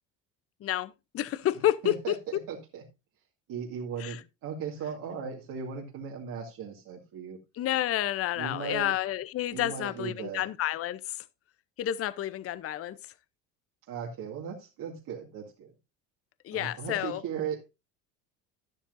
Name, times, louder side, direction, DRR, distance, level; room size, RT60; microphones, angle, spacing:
voice 1, 0.6-2.1 4.0-4.2 7.5-11.2 11.8-13.1 16.4-17.2, left 12 dB, 40° left, 0.7 m, -30 dB
voice 2, 1.8-2.8 3.5-7.4 8.4-8.9 9.5-10.4 13.9-15.7 16.5-17.7, right 7 dB, 60° right, 2.2 m, -37 dB
11.5 x 10.0 x 2.6 m
supercardioid pair, 95°, 37 cm